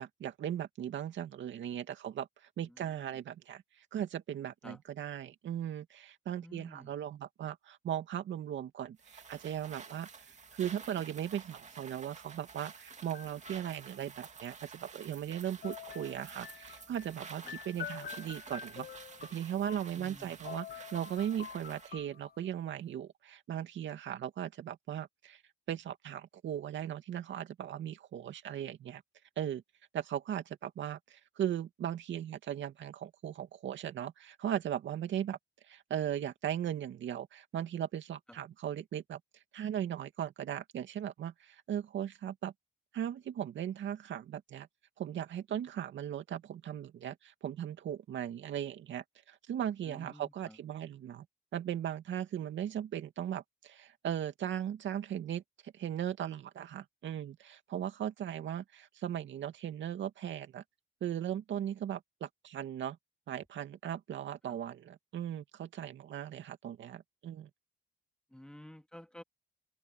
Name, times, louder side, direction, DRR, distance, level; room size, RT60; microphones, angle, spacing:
voice 1, 0.0-2.3 2.6-18.9 19.3-25.4 25.7-29.0 29.4-29.6 29.9-35.4 35.7-39.2 39.5-42.5 42.9-44.7 45.0-51.3 51.5-60.6 61.0-63.0 63.3-67.5, right 10 dB, 70° right, 2.5 m, -38 dB
voice 2, 2.6-3.2 4.6-4.8 6.4-6.9 17.4-17.5 19.9-20.5 38.3-38.4 49.8-50.6 64.4-64.6 68.3-69.2, left 1 dB, 5° left, 2.8 m, -52 dB
sound 1, 9.0-22.0, right 5 dB, 35° right, 2.4 m, -51 dB
sound 2, 13.0-14.0 15.6-20.2 20.5-22.6, left 8 dB, 50° left, 1.1 m, -47 dB
cardioid pair, 90°, 20 cm